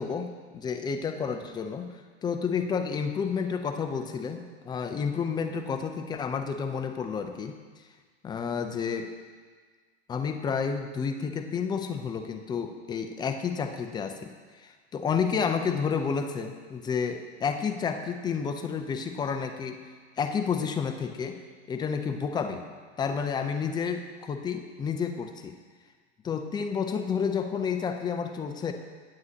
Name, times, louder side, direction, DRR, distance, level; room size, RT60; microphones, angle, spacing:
voice 1, 0.0-1.9 2.2-7.6 8.2-9.1 10.1-14.3 14.6-19.8 20.2-21.4 21.7-22.6 23.0-25.6 26.2-28.7, left 6 dB, 15° left, 6 dB, 0.4 m, -30 dB
9.4 x 7.7 x 2.8 m, 1.5 s
hypercardioid pair, 110°, 35 cm